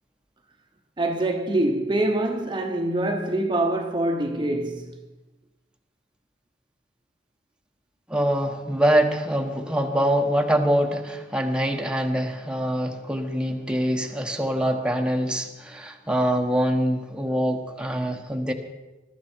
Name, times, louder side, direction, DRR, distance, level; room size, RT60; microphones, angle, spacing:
voice 1, 1.0-5.0, right 1 dB, 25° right, 1.1 m, -25 dB
voice 2, 8.1-18.5, equal, 5° right, 1.2 m, -24 dB
21.0 x 13.0 x 4.5 m
head